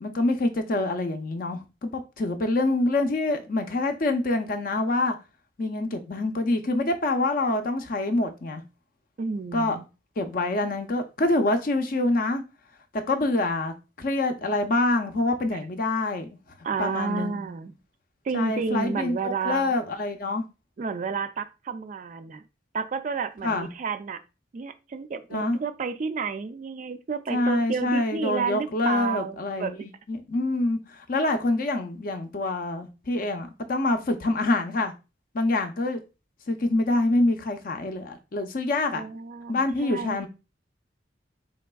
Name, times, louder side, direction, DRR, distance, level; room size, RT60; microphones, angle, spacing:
voice 1, 0.0-5.2 5.6-8.6 9.5-9.8 10.2-12.4 13.1-16.3 16.8-17.4 18.3-20.5 23.4-23.7 25.3-25.6 27.3-34.9 35.3-36.0 36.5-39.0 39.5-40.3, left 2 dB, 45° left, 0.5 m, -26 dB
voice 2, 9.2-9.8 15.5-15.6 16.6-17.7 18.2-19.7 20.8-22.4 22.7-24.2 24.5-29.8 38.9-40.3, right 5 dB, 40° right, 0.3 m, -31 dB
4.0 x 3.4 x 2.2 m
head